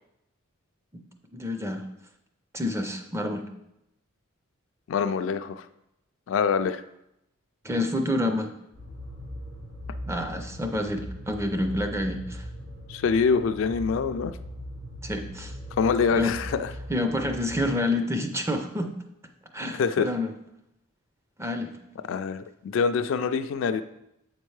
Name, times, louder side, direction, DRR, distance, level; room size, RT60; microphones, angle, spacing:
voice 1, 1.3-1.8 2.5-3.5 7.6-8.5 10.1-12.4 15.0-15.5 16.1-16.3 16.9-18.9 19.5-20.3 21.4-21.7, left 1 dB, 15° right, 6 dB, 0.4 m, -28 dB
voice 2, 4.9-5.7 6.3-6.8 12.9-14.3 15.8-16.7 19.7-20.1 22.1-23.8, left 5 dB, 65° left, 10 dB, 0.3 m, -25 dB
sound 1, 8.7-17.6, equal, 70° right, 1.9 m, -39 dB
7.7 x 4.4 x 3.2 m, 0.84 s
head